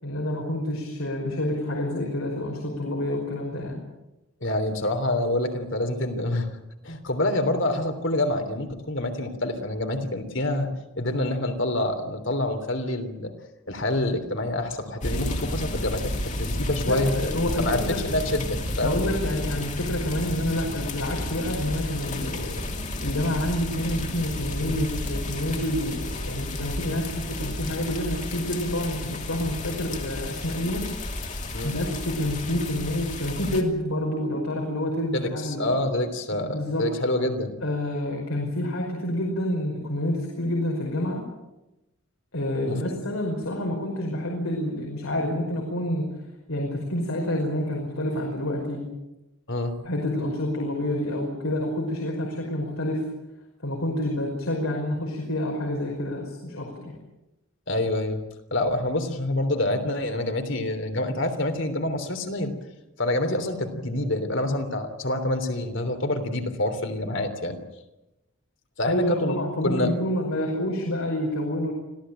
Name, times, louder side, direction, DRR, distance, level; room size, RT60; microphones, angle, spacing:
voice 1, 0.0-3.8 16.9-18.0 18.8-22.6 23.0-30.9 31.6-35.8 36.5-36.9 37.6-41.2 42.3-46.1 46.5-48.8 49.8-53.1 53.6-56.9 68.9-71.7, left 1 dB, 75° left, 0 dB, 5.4 m, -28 dB
voice 2, 4.4-6.5 6.8-10.7 10.9-13.3 13.7-17.1 17.6-19.0 31.5-31.7 35.1-37.6 42.7-42.8 49.5-49.7 57.7-58.2 58.5-62.5 63.0-67.6 68.8-69.4 69.6-69.9, left 1 dB, 60° left, 7 dB, 3.3 m, -27 dB
sound 1, 15.0-33.6, left 1 dB, 35° left, 2.9 m, -32 dB
26.0 x 16.5 x 9.0 m, 0.98 s
head